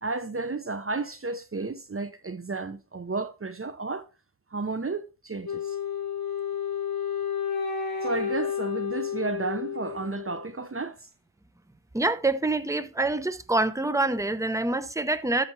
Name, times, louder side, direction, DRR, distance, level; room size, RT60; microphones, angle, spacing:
voice 1, 0.0-4.1 4.5-5.8 8.0-11.1, right 3 dB, 35° right, 0.8 m, -32 dB
Wind instrument woodwind instrument, 5.4-10.5, left 7 dB, 65° left, 3.0 m, -31 dB
voice 2, 11.9-15.5, right 2 dB, 10° right, 0.9 m, -26 dB
13.5 x 5.7 x 3.3 m
cardioid pair, 55°, 38 cm